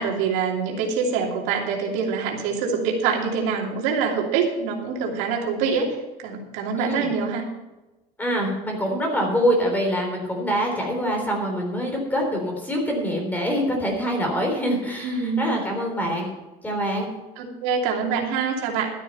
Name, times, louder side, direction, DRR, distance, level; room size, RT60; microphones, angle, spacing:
voice 1, 0.0-7.4 15.0-15.5 17.4-18.9, right 5 dB, 80° right, 0 dB, 2.8 m, -25 dB
voice 2, 6.8-7.1 8.2-16.3 16.6-17.1, equal, 10° left, 1 dB, 3.7 m, -25 dB
13.0 x 9.3 x 5.7 m, 1.0 s
cardioid pair, 145°, 17 cm